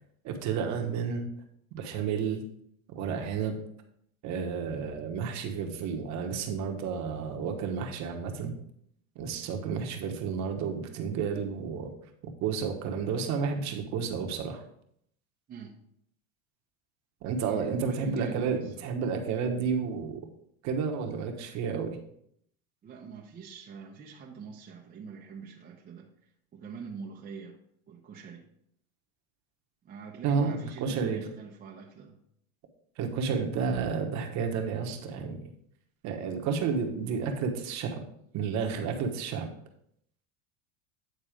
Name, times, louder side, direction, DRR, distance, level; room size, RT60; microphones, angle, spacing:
voice 1, 0.2-1.3 1.7-2.4 2.9-3.6 4.2-8.5 9.1-11.9 12.4-14.6 17.2-20.2 20.6-22.0 30.2-31.2 33.0-35.4 36.0-38.0 38.3-39.5, right 6 dB, 40° right, 3 dB, 1.2 m, -31 dB
voice 2, 17.4-18.9 22.8-27.6 27.9-28.4 29.8-32.2, right 6 dB, 20° right, -2 dB, 0.8 m, -44 dB
9.1 x 4.0 x 5.0 m, 0.71 s
supercardioid pair, 140°, 42 cm